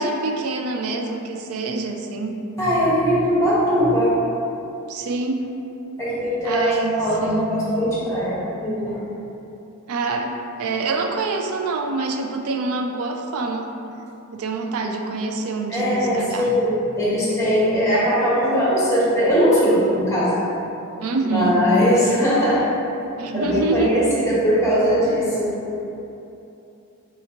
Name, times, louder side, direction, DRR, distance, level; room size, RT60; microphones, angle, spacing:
voice 1, 0.0-2.4 4.9-5.5 6.4-7.5 9.9-13.7 14.3-16.5 21.0-21.6 23.2-24.0, right 3 dB, 75° right, 4 dB, 0.4 m, -26 dB
voice 2, 2.6-4.1 6.0-6.6 7.0-9.0 15.7-20.4 21.3-22.6 23.3-25.5, equal, 15° left, -8 dB, 1.2 m, -20 dB
5.8 x 2.7 x 2.9 m, 2.9 s
head